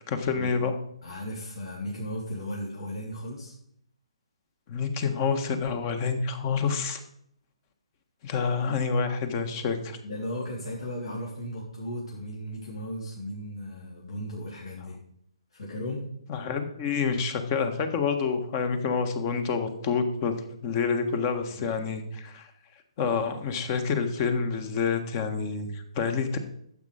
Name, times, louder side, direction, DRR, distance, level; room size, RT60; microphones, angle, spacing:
voice 1, 0.1-0.7 4.7-7.0 8.2-10.0 16.3-22.5 23.0-26.4, left 5 dB, 35° left, 8 dB, 1.6 m, -28 dB
voice 2, 1.0-3.5 10.0-15.0 15.5-16.1 21.5-21.7, equal, 65° left, -3 dB, 3.4 m, -36 dB
13.5 x 7.6 x 5.1 m, 0.73 s
figure-of-eight pair, 135°, 3 cm